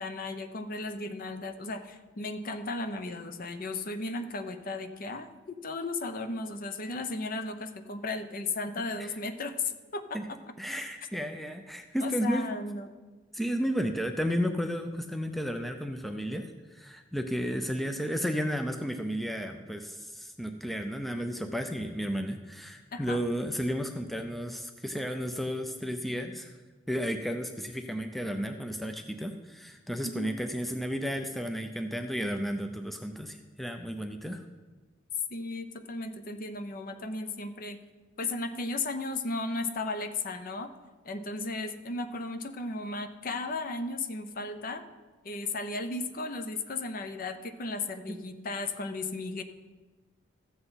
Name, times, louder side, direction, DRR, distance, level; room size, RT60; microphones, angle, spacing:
voice 1, 0.0-5.3 5.6-10.2 12.0-12.9 22.9-23.2 30.0-30.4 35.3-37.8 38.2-40.7 41.0-44.8 45.2-49.4, left 3 dB, 45° left, 9 dB, 0.6 m, -35 dB
voice 2, 10.6-12.5 13.3-26.5 26.9-34.4, equal, ahead, 6 dB, 0.5 m, -33 dB
14.0 x 7.9 x 4.0 m, 1.3 s
head